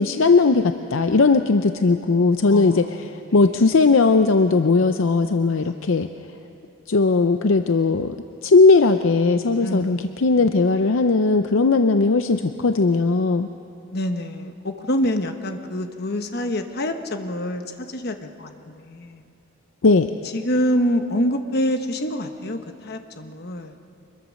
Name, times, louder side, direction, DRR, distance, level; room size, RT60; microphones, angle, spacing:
voice 1, 0.0-6.1 6.9-8.2 8.4-13.5 19.8-20.1, left 3 dB, 70° left, 8 dB, 0.6 m, -18 dB
voice 2, 2.5-3.3 5.6-6.0 9.6-10.5 13.9-17.6 17.9-19.2 20.3-23.8, equal, 50° left, 6 dB, 1.2 m, -26 dB
25.0 x 21.5 x 6.4 m, 2.8 s
head